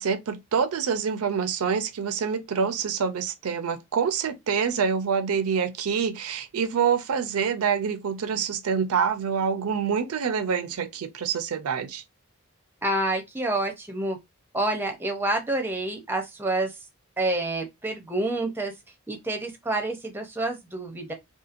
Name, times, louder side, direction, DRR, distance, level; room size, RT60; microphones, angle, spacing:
voice 1, 0.0-12.0, right 6 dB, 80° right, 0.4 m, -26 dB
voice 2, 12.8-14.2 14.5-16.8 17.2-18.7 19.1-21.1, right 2 dB, 10° right, 0.5 m, -28 dB
2.8 x 2.4 x 2.4 m
head